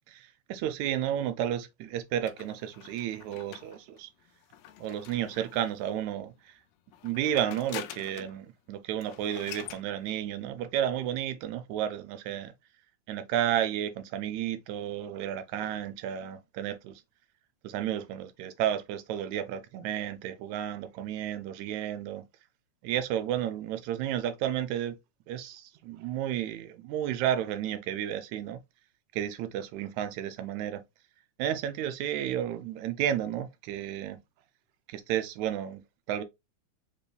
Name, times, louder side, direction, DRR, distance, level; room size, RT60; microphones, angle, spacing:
voice 1, 0.1-4.1 4.8-6.5 7.0-12.5 13.1-17.0 17.6-22.2 22.8-25.0 25.3-28.6 29.1-30.8 31.4-34.2 34.9-35.8 36.1-36.2, right 10 dB, 80° right, 1.9 m, -32 dB
sound 1, 2.3-5.9 6.9-8.4 8.7-8.8 9.0-9.9, left 11 dB, 75° left, 1.6 m, -46 dB
5.4 x 3.1 x 2.2 m
omnidirectional pair, 3.4 m